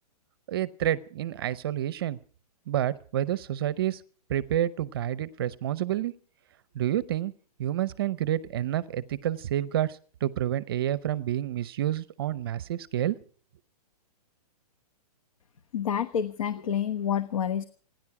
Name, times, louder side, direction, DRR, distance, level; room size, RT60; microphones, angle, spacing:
voice 1, 0.5-2.2 2.7-4.0 4.3-6.1 6.7-7.3 7.6-13.2, right 12 dB, 35° right, 18 dB, 0.7 m, -29 dB
voice 2, 15.7-17.6, left 8 dB, 55° left, 12 dB, 1.1 m, -28 dB
29.0 x 10.5 x 4.8 m, 0.44 s
hypercardioid pair, 165°, 20 cm